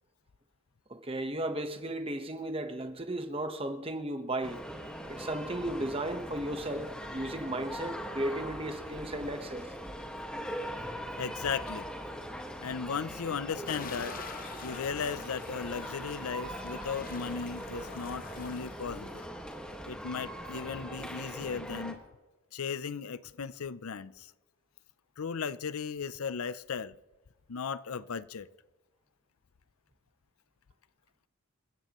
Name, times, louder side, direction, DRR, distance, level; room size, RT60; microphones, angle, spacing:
voice 1, 0.9-4.6 5.0-9.7, right 1 dB, 25° right, 1.2 m, -35 dB
sound 1, 4.4-21.9, equal, 5° left, 1.6 m, -41 dB
voice 2, 11.2-11.9 12.6-14.2 14.6-19.3 19.9-22.0 22.5-24.3 25.2-26.9 27.5-28.5, left 6 dB, 85° left, 0.6 m, -36 dB
sound 2, 13.7-19.3, left 5 dB, 40° left, 0.9 m, -46 dB
27.5 x 15.5 x 3.1 m
head